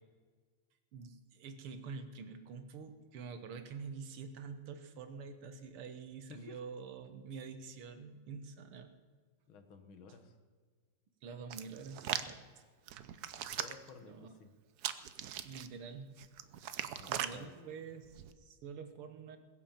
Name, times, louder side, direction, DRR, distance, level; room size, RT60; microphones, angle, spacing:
voice 1, 0.9-8.9 11.2-12.7 14.0-14.4 15.3-16.2 17.1-19.4, right 5 dB, 85° right, 8 dB, 2.1 m, -47 dB
voice 2, 9.5-10.3 13.2-13.3 13.6-14.5 17.0-17.8, left 5 dB, 70° left, 7 dB, 2.1 m, -54 dB
Hands, 11.5-12.3 12.9-13.9 14.8-15.7 16.2-17.3 18.0-18.3, right 10 dB, 65° right, 1.0 m, -39 dB
21.0 x 7.6 x 7.2 m, 1.5 s
omnidirectional pair, 2.4 m